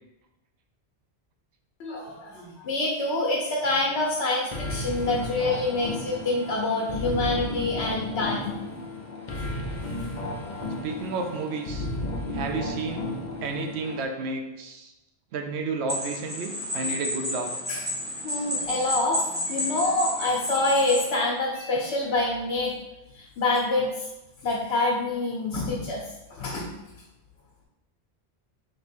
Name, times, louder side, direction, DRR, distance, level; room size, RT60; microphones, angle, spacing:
voice 1, 1.8-8.5 17.7-17.8 18.2-22.7 23.1-24.1 24.4-26.0 26.4-26.7, left 2 dB, 90° left, -2 dB, 0.9 m, -26 dB
sound 1, 4.5-14.0, left 1 dB, 50° left, 0.7 m, -33 dB
voice 2, 10.8-11.9 12.3-13.0 13.4-14.9 15.3-17.5, right 3 dB, 85° right, 4 dB, 0.9 m, -31 dB
sound 2, 15.9-21.1, left 1 dB, 10° right, 1.3 m, -31 dB
3.2 x 3.0 x 4.2 m, 0.98 s
omnidirectional pair, 1.1 m